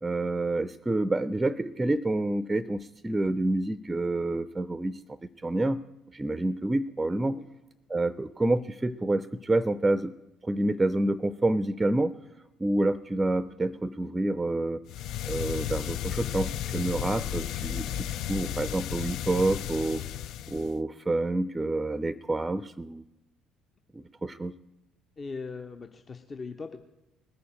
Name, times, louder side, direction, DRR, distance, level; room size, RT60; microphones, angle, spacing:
voice 1, 0.0-5.0 5.4-5.8 6.1-7.4 7.9-10.1 10.4-12.1 12.6-14.8 15.3-17.9 18.3-20.0 20.5-23.0 23.9-24.5, right 2 dB, 15° right, 16 dB, 0.5 m, -28 dB
sound 1, 14.9-20.8, left 11 dB, 55° left, 0.4 m, -33 dB
voice 2, 25.2-26.8, left 4 dB, 30° left, 6 dB, 0.9 m, -39 dB
20.0 x 6.9 x 8.8 m, 1.0 s
figure-of-eight pair, 50°, 0 cm